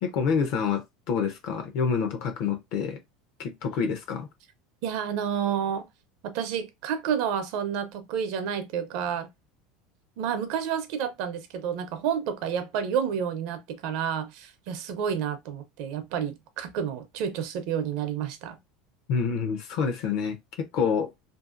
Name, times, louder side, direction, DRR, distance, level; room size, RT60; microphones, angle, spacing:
voice 1, 0.0-3.0 3.4-4.3 19.1-21.1, left 6 dB, 60° left, 0.6 m, -27 dB
voice 2, 4.8-5.9 6.2-9.3 10.2-18.6, right 8 dB, 60° right, 0.5 m, -30 dB
2.6 x 2.4 x 2.4 m
supercardioid pair, 145°, 0 cm